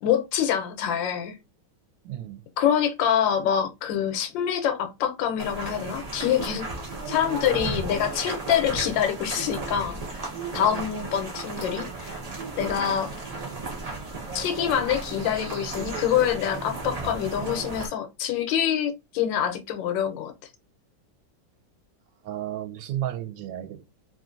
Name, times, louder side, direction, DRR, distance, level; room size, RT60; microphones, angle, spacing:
voice 1, 0.0-1.4 2.6-6.6 7.1-10.2 10.5-12.2 12.6-13.1 14.3-20.3, left 9 dB, 90° left, 1.3 m, -25 dB
voice 2, 2.0-2.4 22.2-23.8, right 12 dB, 80° right, 1.3 m, -33 dB
sound 1, 5.4-17.9, right 3 dB, 40° right, 0.5 m, -34 dB
3.1 x 2.4 x 2.5 m
omnidirectional pair, 2.0 m